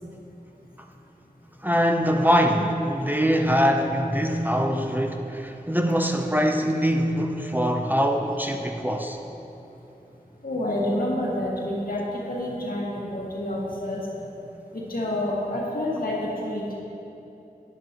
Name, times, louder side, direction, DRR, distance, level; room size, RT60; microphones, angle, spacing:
voice 1, 1.6-9.2, equal, 10° right, 3 dB, 0.6 m, -23 dB
voice 2, 10.4-14.0 14.7-16.7, left 1 dB, 70° left, -4 dB, 1.8 m, -28 dB
11.0 x 9.9 x 3.0 m, 3.0 s
wide cardioid pair, 50°, 15 cm